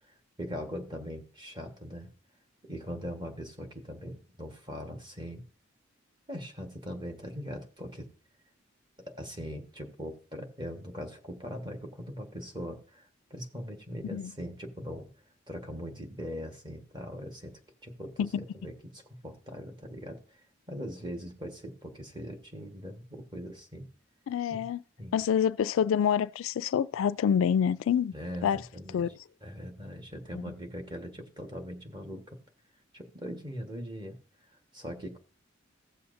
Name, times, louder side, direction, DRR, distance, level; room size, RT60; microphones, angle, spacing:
voice 1, 0.4-2.1 2.7-5.4 6.3-8.1 9.0-15.1 15.5-17.5 17.8-20.4 20.7-23.9 24.5-24.7 25.0-25.1 28.1-29.1 29.4-32.4 32.9-34.2 34.7-35.2, equal, 25° right, 1.4 m, -41 dB
voice 2, 24.3-24.8 25.1-28.1 28.4-28.6 28.9-29.1 30.3-30.4, left 8 dB, 75° left, 0.3 m, -27 dB
15.5 x 7.0 x 2.6 m
head